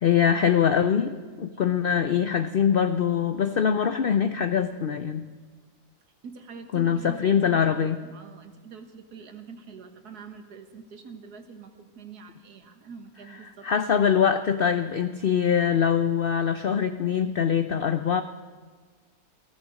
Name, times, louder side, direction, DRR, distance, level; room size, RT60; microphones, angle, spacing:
voice 1, 0.0-5.3 6.7-8.0 13.6-18.2, left 8 dB, 80° left, 10 dB, 0.5 m, -23 dB
voice 2, 6.2-13.7, right 5 dB, 75° right, 7 dB, 1.9 m, -45 dB
15.5 x 13.5 x 6.3 m, 1.5 s
omnidirectional pair, 1.7 m